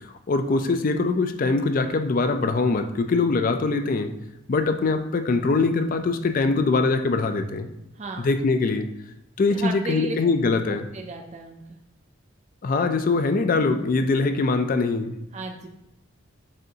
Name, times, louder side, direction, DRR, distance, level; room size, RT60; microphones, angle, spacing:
voice 1, 0.3-4.1 4.5-7.7 8.2-8.9 9.4-10.9 12.6-15.1, left 3 dB, 40° left, 8 dB, 0.3 m, -22 dB
voice 2, 7.9-8.3 9.5-10.1 10.9-11.8 15.3-15.7, right 2 dB, 30° right, 3 dB, 0.4 m, -34 dB
7.5 x 2.6 x 2.7 m, 0.88 s
head